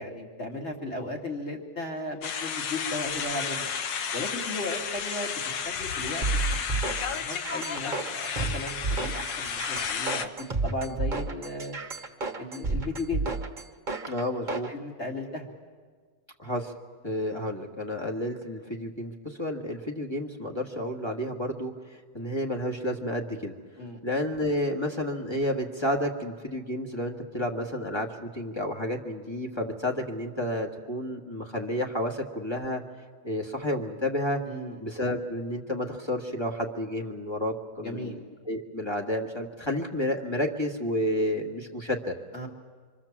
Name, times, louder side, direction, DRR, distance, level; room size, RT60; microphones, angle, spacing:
voice 1, 0.0-3.7 4.1-5.4 5.6-6.8 7.0-11.7 12.4-13.3 14.5-15.5 23.8-24.0 34.5-34.8 37.8-38.2 42.3-42.5, left 2 dB, 40° left, 1 dB, 3.0 m, -36 dB
sound 1, 2.2-10.3, left 6 dB, 90° left, 1.8 m, -32 dB
sound 2, 6.2-14.7, right 3 dB, 30° right, 1.5 m, -31 dB
voice 2, 14.1-14.7 16.4-16.7 17.0-23.5 24.0-32.8 33.2-34.4 34.8-38.2 38.5-42.1, left 1 dB, 15° left, 1 dB, 1.9 m, -31 dB
27.0 x 24.5 x 7.4 m, 1.6 s
omnidirectional pair, 1.9 m